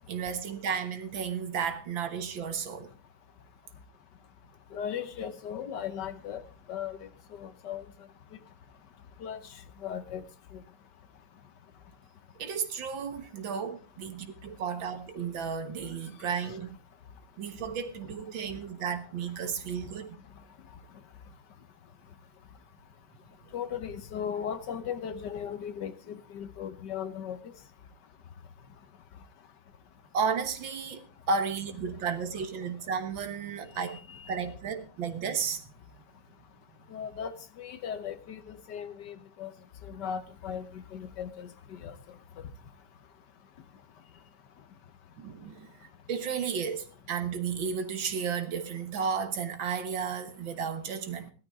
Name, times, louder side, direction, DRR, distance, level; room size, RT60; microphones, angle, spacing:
voice 1, 0.1-2.9 12.4-16.8 17.4-20.2 30.1-34.0 34.3-35.6 45.2-45.7 46.1-51.3, right 6 dB, 75° right, 2.1 m, -33 dB
voice 2, 4.7-6.4 6.7-7.8 9.2-10.2 10.5-10.6 16.2-16.4 23.5-27.5 33.7-34.4 36.9-39.5 39.8-42.4, left 8 dB, 65° left, 1.5 m, -38 dB
16.5 x 12.5 x 3.6 m
omnidirectional pair, 2.1 m